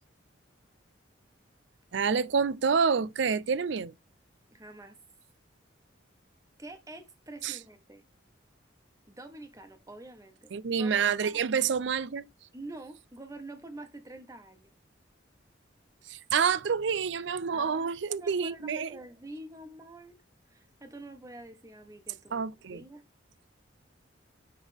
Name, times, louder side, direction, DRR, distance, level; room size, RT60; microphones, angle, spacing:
voice 1, 1.9-3.9 7.4-7.6 10.5-12.3 16.1-18.9 22.3-22.8, right 6 dB, 65° right, 0.5 m, -28 dB
voice 2, 4.5-5.0 6.6-8.0 9.1-10.5 10.8-11.4 12.5-14.7 17.5-20.2 20.5-23.0, right 2 dB, 15° right, 1.2 m, -46 dB
9.8 x 3.6 x 3.5 m
head